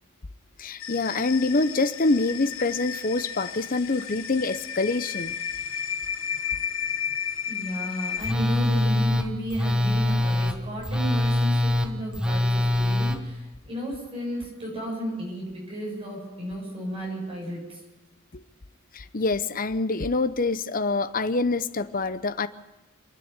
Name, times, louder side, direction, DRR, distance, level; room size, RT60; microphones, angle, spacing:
voice 1, 0.6-5.3 18.3-18.4 18.9-22.5, left 3 dB, 40° left, 13 dB, 0.8 m, -25 dB
sound 1, 0.8-8.3, left 8 dB, 70° left, 0.9 m, -33 dB
voice 2, 7.5-17.8, equal, 25° right, -3 dB, 7.8 m, -33 dB
Telephone, 8.2-13.2, left 1 dB, 5° right, 1.2 m, -23 dB
27.0 x 10.0 x 9.5 m, 1.1 s
head